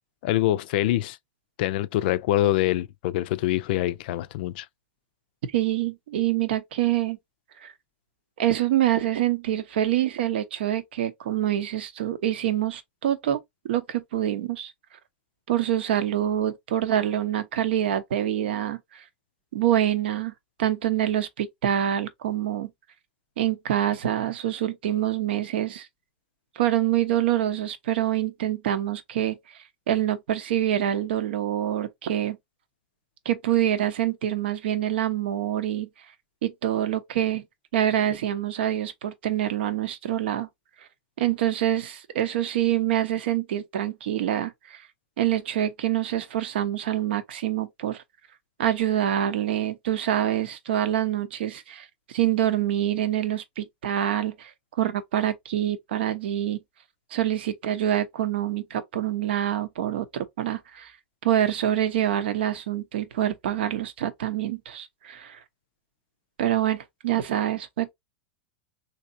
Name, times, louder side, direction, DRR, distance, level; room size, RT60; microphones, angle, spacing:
voice 1, 0.2-1.2 1.6-4.7, left 14 dB, 60° left, 0.3 m, -25 dB
voice 2, 5.5-7.2 7.6-7.7 8.4-13.4 13.6-14.7 15.5-19.0 19.5-20.3 20.6-22.7 23.4-25.9 26.6-29.4 29.9-32.4 33.2-35.9 36.4-37.4 37.7-40.5 41.2-44.8 45.2-48.0 48.6-54.5 54.8-56.6 57.1-60.9 61.2-65.4 66.4-67.9, right 11 dB, 75° right, 0.8 m, -26 dB
3.3 x 2.8 x 2.6 m
hypercardioid pair, 125°, 6 cm